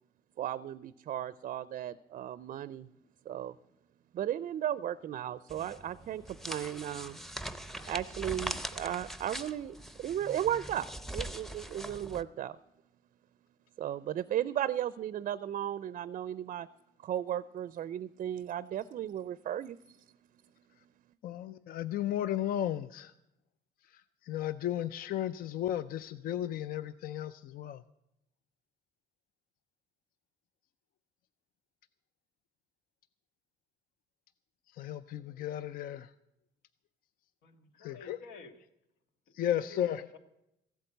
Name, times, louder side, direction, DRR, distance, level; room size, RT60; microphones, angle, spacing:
voice 1, 0.4-2.9 3.3-3.5 4.1-7.2 7.9-10.9 11.1-12.6 13.8-16.7 17.0-19.8, right 11 dB, 50° right, 17 dB, 0.4 m, -35 dB
sound 1, 5.5-12.2, right 1 dB, ahead, 0.7 m, -42 dB
voice 2, 21.2-23.1 24.2-27.8 34.8-36.1 37.8-38.2 39.3-40.1, left 11 dB, 60° left, 15 dB, 0.5 m, -34 dB
voice 3, 37.4-38.6 39.4-40.2, left 3 dB, 85° left, 8 dB, 1.6 m, -50 dB
15.0 x 8.4 x 7.9 m, 0.85 s
cardioid pair, 110°, 17 cm